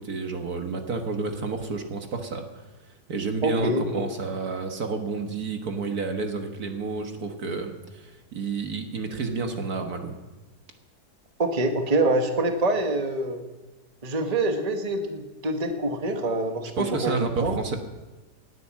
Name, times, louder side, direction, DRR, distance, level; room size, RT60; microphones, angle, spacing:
voice 1, 0.0-2.6 3.1-10.2 16.8-17.8, right 4 dB, 60° right, 5 dB, 1.8 m, -30 dB
voice 2, 3.4-4.1 11.4-13.4 14.0-17.6, right 2 dB, 25° right, 5 dB, 1.3 m, -25 dB
19.0 x 9.4 x 7.4 m, 1.2 s
omnidirectional pair, 1.9 m